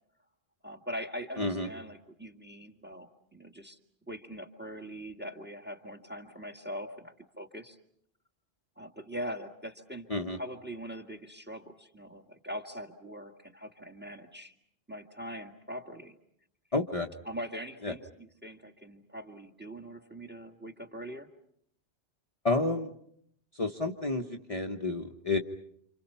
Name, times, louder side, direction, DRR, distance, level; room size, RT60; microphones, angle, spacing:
voice 1, 0.6-3.8 4.1-7.8 8.8-14.6 14.9-16.2 17.3-21.3, equal, 10° right, 5 dB, 2.0 m, -42 dB
voice 2, 1.4-1.7 10.1-10.4 16.7-17.1 17.8-17.9 22.4-22.9 23.5-25.4, left 2 dB, 30° left, 1 dB, 1.3 m, -30 dB
29.0 x 28.0 x 5.6 m, 0.70 s
omnidirectional pair, 1.2 m